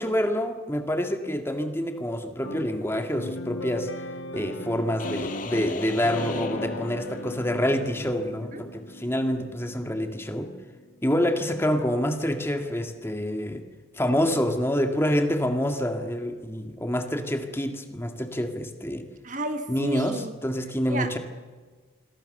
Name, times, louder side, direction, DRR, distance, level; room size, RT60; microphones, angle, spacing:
voice 1, 0.0-4.1 4.3-10.5 11.0-13.6 13.9-19.1 19.7-21.2, equal, 10° left, 5 dB, 1.9 m, -27 dB
sound 1, 2.4-10.9, left 1 dB, 70° left, 1.3 m, -38 dB
sound 2, 5.0-7.6, left 3 dB, 40° left, 1.9 m, -37 dB
voice 2, 19.2-20.4 20.9-21.1, right 1 dB, 40° right, 8 dB, 1.5 m, -31 dB
27.5 x 22.5 x 6.7 m, 1.4 s
head